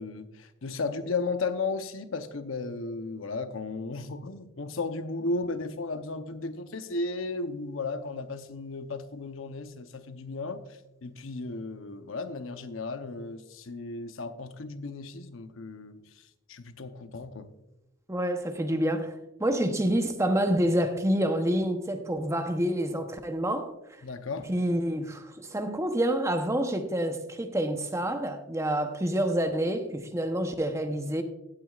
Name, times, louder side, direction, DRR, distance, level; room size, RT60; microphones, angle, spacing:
voice 1, 0.0-10.6 11.0-16.0 16.5-17.5 24.0-24.5, left 3 dB, 90° left, 0.8 m, -34 dB
voice 2, 18.1-23.7 24.5-31.2, right 1 dB, 15° right, 0.8 m, -28 dB
16.0 x 9.2 x 2.4 m
head